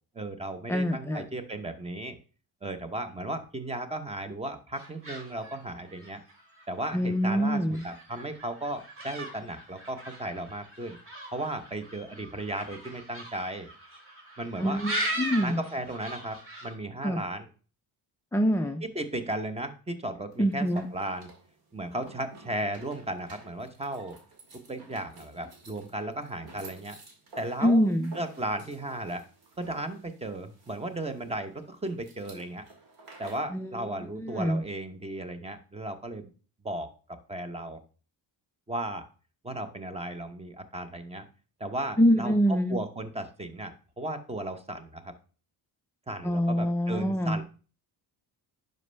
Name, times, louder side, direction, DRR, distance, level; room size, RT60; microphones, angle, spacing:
voice 1, 0.1-2.2 2.6-6.2 6.7-11.0 11.3-13.7 14.4-14.8 15.4-17.5 18.8-20.7 20.9-21.3 21.7-24.2 24.7-27.0 27.4-29.2 29.6-32.7 33.2-36.3 36.6-37.8 38.7-39.0 39.4-41.3 41.6-42.3 42.7-45.1 46.1-47.4, right 1 dB, 15° right, 9 dB, 0.9 m, -35 dB
voice 2, 0.7-1.2 6.9-7.9 14.6-15.6 17.0-17.2 18.3-18.8 20.4-20.9 27.6-28.1 33.5-34.6 42.0-42.8 46.2-47.4, equal, 5° left, 6 dB, 0.3 m, -25 dB
sound 1, 4.8-16.7, right 1 dB, 30° right, 2.5 m, -40 dB
sound 2, 20.3-33.6, right 3 dB, 60° right, 2.1 m, -52 dB
10.5 x 5.3 x 3.3 m, 0.38 s
cardioid pair, 135°, 41 cm